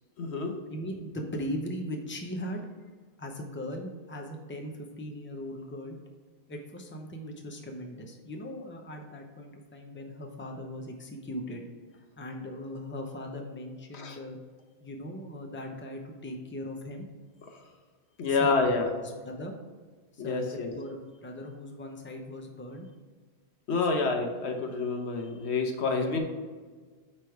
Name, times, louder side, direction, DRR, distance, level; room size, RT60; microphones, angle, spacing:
voice 1, 0.2-0.6 13.9-14.2 18.2-18.9 20.2-20.7 23.7-26.2, left 4 dB, 85° left, 4 dB, 1.2 m, -28 dB
voice 2, 0.7-2.7 3.2-6.0 6.5-11.7 12.2-14.4 14.8-17.1 18.3-19.0 19.2-19.5 20.1-22.9 23.9-24.1 25.9-26.1, left 1 dB, 10° left, 2 dB, 0.7 m, -39 dB
8.5 x 3.4 x 4.6 m, 1.4 s
omnidirectional pair, 1.1 m